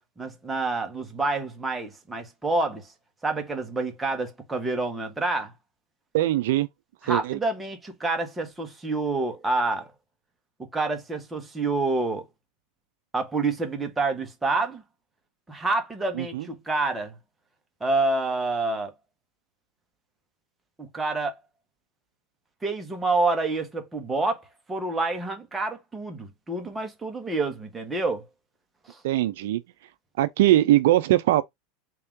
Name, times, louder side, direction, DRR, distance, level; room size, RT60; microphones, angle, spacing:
voice 1, 0.2-2.9 3.2-5.5 7.0-9.9 10.6-12.3 13.1-14.8 15.5-17.1 17.8-18.9 20.8-21.3 22.6-28.2 28.9-29.0, right 3 dB, 10° right, 1.1 m, -28 dB
voice 2, 6.1-6.7 7.1-7.4 16.2-16.4 29.0-29.6 30.2-31.4, right 14 dB, 75° right, 0.4 m, -21 dB
3.6 x 2.8 x 3.5 m
supercardioid pair, 125°, 0 cm